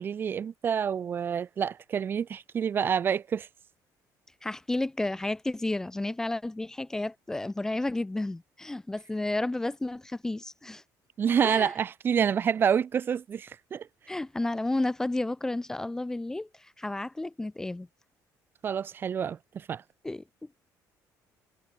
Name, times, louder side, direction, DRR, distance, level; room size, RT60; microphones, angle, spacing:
voice 1, 0.0-3.5 11.2-13.9 18.6-19.8, right 7 dB, 30° right, 1.6 m, -28 dB
voice 2, 4.4-10.8 11.4-11.7 14.1-17.9 20.0-20.2, left 2 dB, 10° left, 1.2 m, -32 dB
cardioid pair, 180°, 7 cm